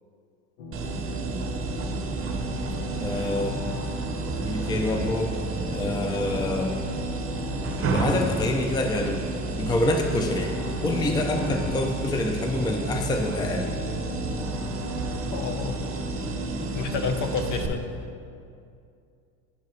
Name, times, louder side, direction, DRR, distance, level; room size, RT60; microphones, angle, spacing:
sound 1, 0.6-17.7, equal, 85° left, 0.9 m, -37 dB
sound 2, 0.7-17.7, right 3 dB, 35° right, 0.9 m, -31 dB
voice 1, 3.0-3.7 4.5-5.4 5.7-6.7 7.9-9.3 9.6-13.7, left 2 dB, 10° left, 3 dB, 0.5 m, -27 dB
voice 2, 15.3-15.8 16.6-17.9, left 5 dB, 50° left, 6 dB, 0.8 m, -30 dB
11.0 x 4.6 x 3.1 m, 2.4 s
supercardioid pair, 90°, 40 cm